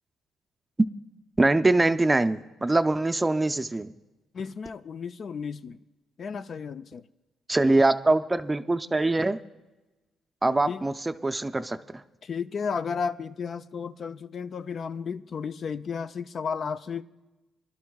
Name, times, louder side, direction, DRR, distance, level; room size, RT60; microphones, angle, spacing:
voice 1, 1.4-3.9 7.5-9.4 10.4-10.9 11.2-11.8, right 2 dB, 15° right, 0.5 m, -23 dB
voice 2, 4.3-5.8 6.2-7.0 10.7-10.8 12.2-17.0, left 6 dB, 50° left, 0.4 m, -33 dB
23.0 x 12.0 x 2.3 m
cardioid pair, 90°, 0 cm